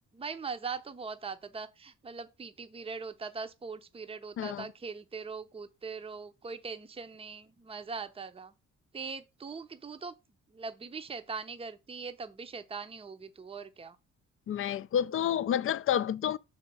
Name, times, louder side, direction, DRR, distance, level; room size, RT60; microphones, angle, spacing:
voice 1, 0.1-8.5 8.9-10.1 10.5-14.0, right 5 dB, 20° right, 0.7 m, -41 dB
voice 2, 4.4-4.7 14.5-16.4, left 10 dB, 45° left, 0.5 m, -29 dB
6.1 x 4.3 x 5.3 m
cardioid pair, 90°, 30 cm